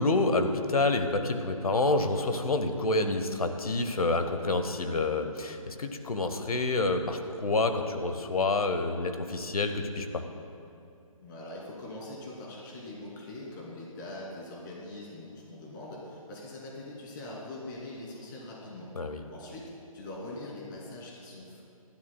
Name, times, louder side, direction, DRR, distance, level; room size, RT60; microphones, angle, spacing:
voice 1, 0.0-10.2 18.9-19.2, left 2 dB, 85° left, 7 dB, 1.1 m, -28 dB
voice 2, 11.2-18.9 19.3-21.6, left 1 dB, 35° left, -4 dB, 2.9 m, -42 dB
19.0 x 12.0 x 2.3 m, 2.5 s
figure-of-eight pair, 150°, 18 cm